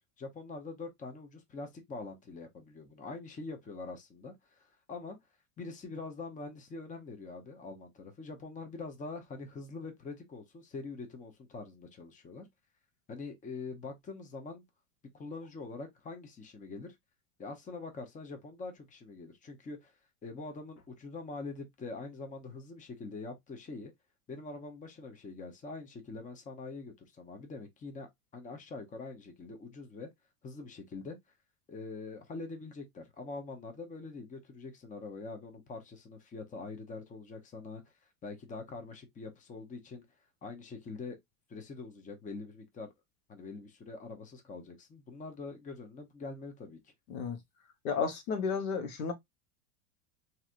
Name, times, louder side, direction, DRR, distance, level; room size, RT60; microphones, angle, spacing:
voice 1, 0.0-5.2 5.6-12.5 13.1-14.6 15.1-16.9 17.4-19.9 20.2-23.9 24.3-30.1 30.4-31.2 31.7-37.8 38.2-40.0 40.4-41.2 41.5-42.9 43.3-46.8, left 3 dB, 20° left, 0.8 m, -44 dB
voice 2, 47.8-49.1, left 5 dB, 90° left, 1.2 m, -32 dB
3.1 x 2.8 x 2.4 m
supercardioid pair, 120°, 41 cm